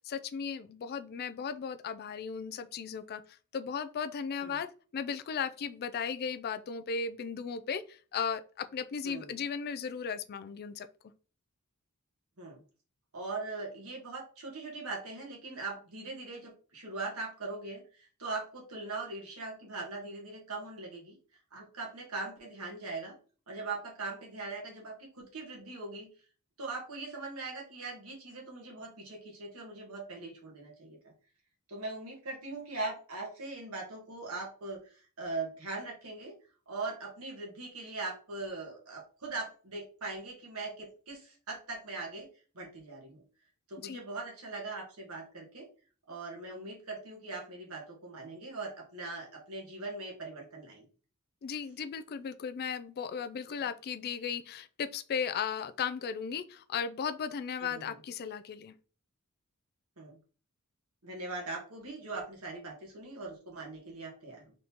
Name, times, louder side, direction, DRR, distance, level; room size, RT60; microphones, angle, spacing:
voice 1, 0.0-10.9 43.8-44.0 51.4-58.7, left 6 dB, 45° left, 0.3 m, -36 dB
voice 2, 9.0-9.3 12.4-12.6 13.1-21.2 21.5-23.1 23.5-26.1 26.6-31.1 31.7-36.3 36.7-42.3 42.5-43.2 43.7-45.7 46.1-50.8 57.6-57.9 60.0-60.2 61.0-64.5, right 3 dB, 70° right, 1.5 m, -41 dB
3.9 x 3.5 x 2.9 m
head